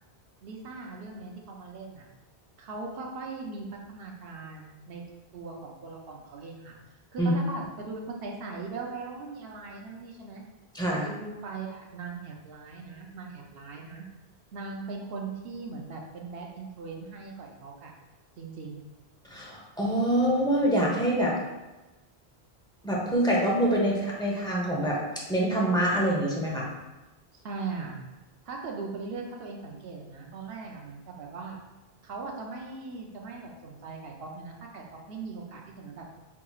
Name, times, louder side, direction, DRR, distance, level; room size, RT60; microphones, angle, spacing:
voice 1, 0.4-2.1 2.6-5.0 5.3-6.7 7.1-10.4 10.9-14.1 14.5-17.9 18.4-18.8 27.3-28.0 28.4-31.6 32.0-36.1, right 4 dB, 70° right, 0 dB, 0.9 m, -39 dB
voice 2, 10.7-11.1 19.3-21.4 22.8-25.0 25.3-26.7, right 1 dB, 5° left, -4 dB, 0.7 m, -25 dB
5.7 x 2.8 x 2.3 m, 1.1 s
omnidirectional pair, 1.1 m